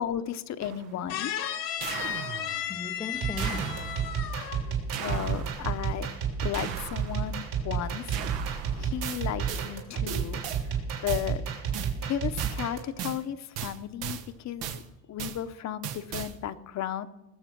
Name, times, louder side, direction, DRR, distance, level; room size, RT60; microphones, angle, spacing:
voice 1, 0.0-1.3 5.0-6.1 6.4-8.2 8.8-10.4 11.0-11.4 12.0-14.8 15.1-17.1, left 10 dB, 50° left, 0.8 m, -34 dB
sound 1, 0.6-1.0 1.8-2.8 3.4-4.3 4.9-5.9 6.5-7.4 8.1-9.7 10.1-10.6 11.1-11.3 11.7-12.0 12.4-12.6 13.0-13.2 13.5-14.3 14.6-14.8 15.2-15.4 15.8-16.4, right 9 dB, 85° right, 1.1 m, -37 dB
sound 2, 1.1-4.7 5.0-5.4, left 10 dB, 85° left, 1.8 m, -34 dB
voice 2, 2.7-4.9, left 4 dB, 15° left, 0.5 m, -40 dB
sound 3, 3.1-12.9, right 7 dB, 65° right, 3.5 m, -31 dB
20.0 x 7.3 x 6.0 m
cardioid pair, 120°, 36 cm